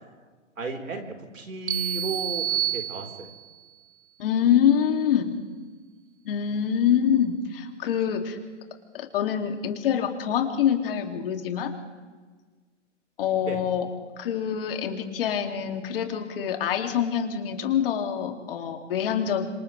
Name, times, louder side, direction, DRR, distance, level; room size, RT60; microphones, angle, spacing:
voice 1, 0.6-3.3 13.5-13.6, right 2 dB, 90° right, 4 dB, 4.5 m, -34 dB
sound 1, 1.7-3.5, right 11 dB, 60° right, 0.7 m, -29 dB
voice 2, 4.2-5.3 6.2-8.4 8.9-11.7 13.2-13.9 14.2-19.4, left 9 dB, 45° left, 4 dB, 2.7 m, -25 dB
30.0 x 26.5 x 3.4 m, 1.4 s
hypercardioid pair, 145°, 38 cm